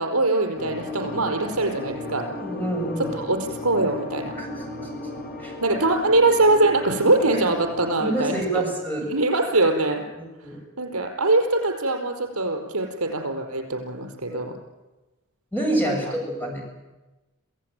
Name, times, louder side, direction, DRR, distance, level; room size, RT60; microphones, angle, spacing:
voice 1, 0.0-2.3 3.1-4.3 5.6-8.6 9.0-10.0 10.8-14.5 15.8-15.9, right 2 dB, 80° right, 4 dB, 4.7 m, -22 dB
sound 1, 0.5-7.9, left 2 dB, 45° left, 4.4 m, -35 dB
voice 2, 2.4-3.1 4.3-4.5 4.8-4.9 5.4-5.5 8.0-9.1 10.1-10.6 14.3-14.5 15.5-16.6, right 1 dB, 10° left, 0 dB, 7.4 m, -27 dB
27.0 x 16.5 x 9.1 m, 1.1 s
head